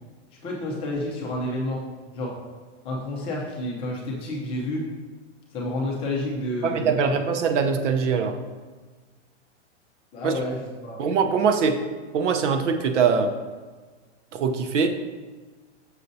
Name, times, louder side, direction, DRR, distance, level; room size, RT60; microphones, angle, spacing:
voice 1, 0.4-1.8 2.1-2.3 2.8-4.9 5.5-7.1 10.1-11.0, left 1 dB, 15° left, -3 dB, 0.6 m, -30 dB
voice 2, 6.6-8.4 10.2-10.3 11.0-11.8 12.1-13.3 14.3-15.0, right 5 dB, 80° right, 7 dB, 0.8 m, -22 dB
6.5 x 6.4 x 2.7 m, 1.4 s
supercardioid pair, 170°, 35 cm